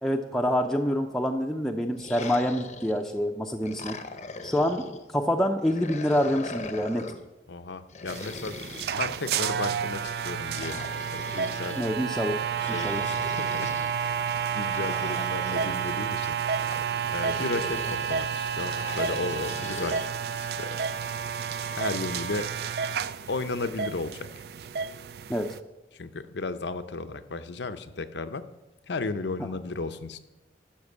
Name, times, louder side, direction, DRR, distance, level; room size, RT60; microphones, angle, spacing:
voice 1, 0.0-3.9 4.4-4.8 5.1-7.1 11.8-12.4 12.7-13.0 25.3-25.5, equal, 5° left, 1 dB, 0.5 m, -26 dB
sound 1, 1.9-3.1 3.6-5.0 5.6-7.3 7.9-9.6 10.5-11.8 12.6-13.9 14.7-16.0 16.6-18.2 18.6-20.1, left 3 dB, 40° left, 0.7 m, -40 dB
voice 2, 7.5-8.6 9.0-10.8 11.1-11.8 12.6-16.4 17.1-20.0 20.4-20.8 21.7-22.5 23.3-24.4 25.9-28.4 28.9-30.2, left 3 dB, 80° left, 10 dB, 0.7 m, -34 dB
sound 2, 8.1-25.6, right 7 dB, 60° right, 0.3 m, -30 dB
12.0 x 5.3 x 6.5 m, 1.0 s
head